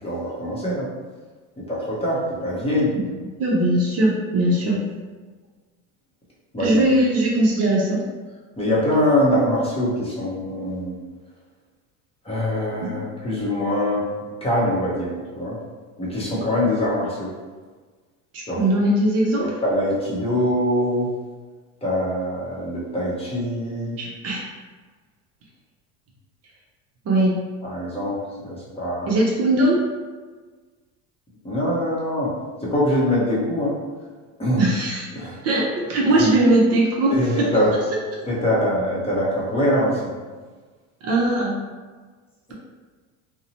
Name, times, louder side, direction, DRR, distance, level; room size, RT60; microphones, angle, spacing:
voice 1, 0.0-0.9 1.6-2.9 6.5-6.9 8.6-11.0 12.2-14.1 14.4-15.6 16.0-17.3 18.5-18.6 19.4-21.1 21.8-24.0 27.6-29.1 31.4-32.3 32.6-33.8 34.4-34.7 35.1-35.4 37.1-37.8 38.2-40.1, left 1 dB, 15° left, -7 dB, 0.8 m, -23 dB
voice 2, 3.4-4.8 6.6-8.0 12.8-13.0 18.3-19.4 24.0-24.5 27.0-27.4 29.1-29.8 34.6-35.1 35.4-37.5 41.0-41.5, right 1 dB, 40° right, -4 dB, 0.6 m, -20 dB
2.6 x 2.1 x 2.8 m, 1.4 s
supercardioid pair, 115°, 37 cm